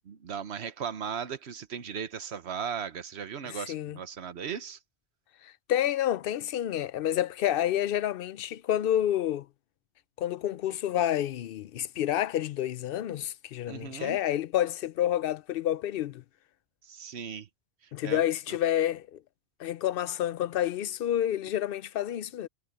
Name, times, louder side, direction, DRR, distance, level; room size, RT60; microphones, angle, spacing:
voice 1, 0.1-4.8 13.7-14.2 16.9-17.5 18.0-18.2, right 7 dB, 85° right, 1.2 m, -37 dB
voice 2, 3.4-4.0 5.4-9.5 10.2-16.2 17.9-19.2 19.6-22.5, left 11 dB, 65° left, 0.7 m, -29 dB
omnidirectional pair, 1.1 m